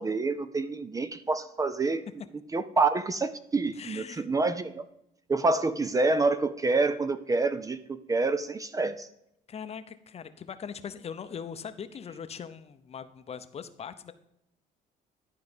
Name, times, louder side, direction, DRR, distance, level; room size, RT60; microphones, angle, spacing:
voice 1, 0.0-2.0 2.5-4.9 5.3-9.1, right 3 dB, 20° right, 12 dB, 0.5 m, -27 dB
voice 2, 3.7-4.3 9.5-14.1, left 7 dB, 40° left, 11 dB, 0.7 m, -41 dB
12.0 x 4.7 x 5.2 m, 0.79 s
cardioid pair, 110°, 17 cm